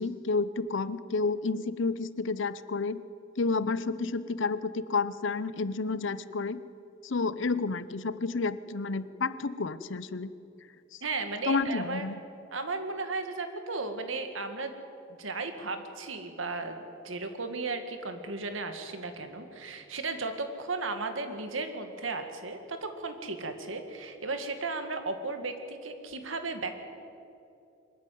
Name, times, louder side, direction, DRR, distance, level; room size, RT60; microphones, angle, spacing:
voice 1, 0.0-3.0 3.4-6.6 7.0-10.3 11.5-12.2, left 4 dB, 70° left, 15 dB, 0.7 m, -30 dB
voice 2, 11.0-12.1 12.5-14.7 15.2-26.8, right 3 dB, 80° right, 7 dB, 2.0 m, -35 dB
23.5 x 13.0 x 9.3 m, 2.7 s
head